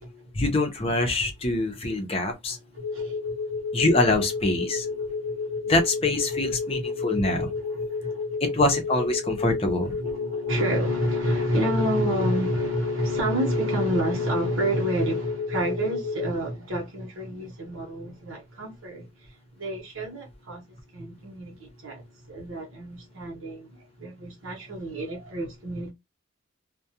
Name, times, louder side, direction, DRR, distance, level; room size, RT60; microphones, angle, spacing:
voice 1, 0.3-2.6 3.7-4.9 5.7-7.5 8.4-10.0, left 2 dB, 25° left, 0.6 m, -24 dB
voice 2, 2.7-3.6 5.1-5.7 6.3-7.3 7.6-8.4 10.0-19.1 19.6-20.6 20.9-23.7 24.0-25.9, right 1 dB, 70° right, 0.9 m, -29 dB
sound 1, 2.8-16.3, left 4 dB, 75° left, 0.4 m, -31 dB
2.3 x 2.2 x 2.7 m
head